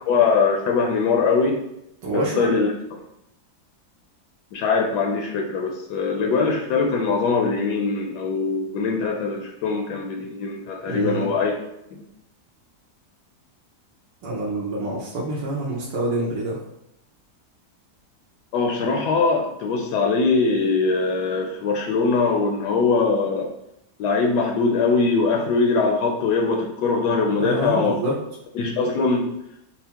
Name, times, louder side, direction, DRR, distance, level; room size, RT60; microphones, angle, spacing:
voice 1, 0.1-1.6 2.1-2.7 4.5-11.5 11.9-12.0 18.5-23.5 24.0-28.0 28.6-29.2, left 4 dB, 80° left, 2 dB, 1.2 m, -22 dB
voice 2, 2.0-2.6 10.9-11.3 14.2-16.6 27.4-28.2, right 1 dB, 90° right, -4 dB, 1.3 m, -26 dB
5.6 x 2.0 x 2.8 m, 0.83 s
omnidirectional pair, 1.8 m